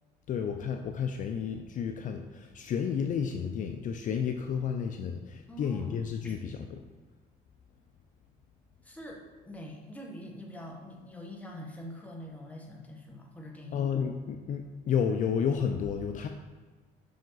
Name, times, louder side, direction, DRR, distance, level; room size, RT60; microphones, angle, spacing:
voice 1, 0.3-6.8 13.7-16.3, left 7 dB, 50° left, 5 dB, 0.4 m, -31 dB
voice 2, 5.5-6.4 8.8-13.8, left 1 dB, 10° left, -1 dB, 1.2 m, -45 dB
5.7 x 5.1 x 3.9 m, 1.4 s
cardioid pair, 110°, 17 cm